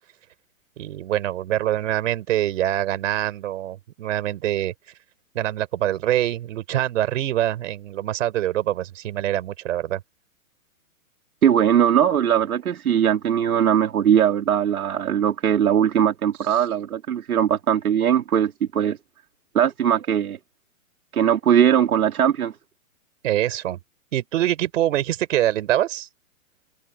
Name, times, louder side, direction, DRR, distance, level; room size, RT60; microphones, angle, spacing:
voice 1, 0.8-4.7 5.3-10.0 23.2-23.8 24.1-26.1, right 12 dB, 60° right, 4.1 m, -24 dB
voice 2, 11.4-19.0 19.5-20.4 21.1-22.5, right 9 dB, 85° right, 2.8 m, -20 dB
hypercardioid pair, 145°, 42 cm